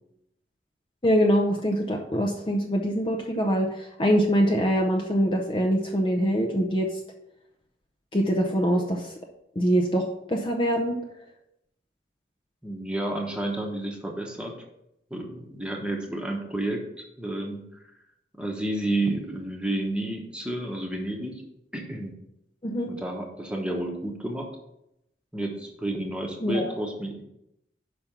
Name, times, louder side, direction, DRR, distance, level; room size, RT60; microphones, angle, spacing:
voice 1, 1.0-7.0 8.1-9.1 9.6-11.0 22.6-22.9 26.4-26.7, equal, 30° left, 2 dB, 0.6 m, -24 dB
voice 2, 12.6-14.5 15.1-17.6 18.4-21.4 21.7-22.1 22.9-24.5 25.3-27.2, right 1 dB, 5° right, 1 dB, 1.1 m, -31 dB
5.8 x 5.2 x 5.9 m, 0.83 s
head